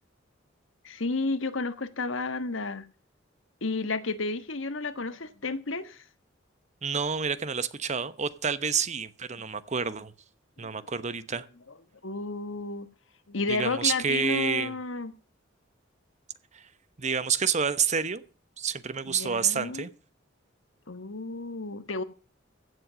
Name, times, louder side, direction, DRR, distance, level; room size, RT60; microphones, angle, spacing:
voice 1, 0.8-2.8 3.6-6.0 10.6-10.7 12.0-12.9 13.3-15.1 19.1-19.9 20.9-22.0, left 3 dB, 85° left, 1.4 m, -32 dB
voice 2, 6.8-10.1 10.6-11.4 13.5-14.8 16.5-16.6 17.0-18.2 18.6-19.9, right 6 dB, 35° right, 1.0 m, -28 dB
15.5 x 7.8 x 6.2 m
head